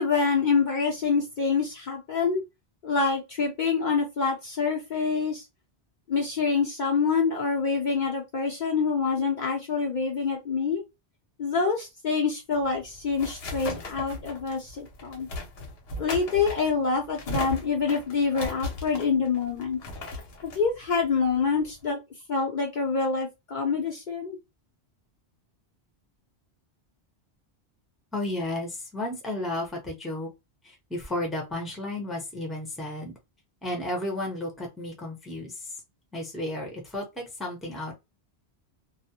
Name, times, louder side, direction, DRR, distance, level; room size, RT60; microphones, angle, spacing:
voice 1, 0.0-2.4 2.8-5.5 6.1-10.8 11.4-15.3 16.0-19.8 20.4-22.0 22.3-24.4, left 5 dB, 50° left, 0.7 m, -26 dB
sound 1, 12.6-21.8, left 2 dB, 75° left, 1.0 m, -38 dB
voice 2, 28.1-30.3 30.6-33.2 33.6-35.8 36.1-37.9, left 1 dB, ahead, 0.7 m, -33 dB
2.3 x 2.1 x 2.7 m
omnidirectional pair, 1.1 m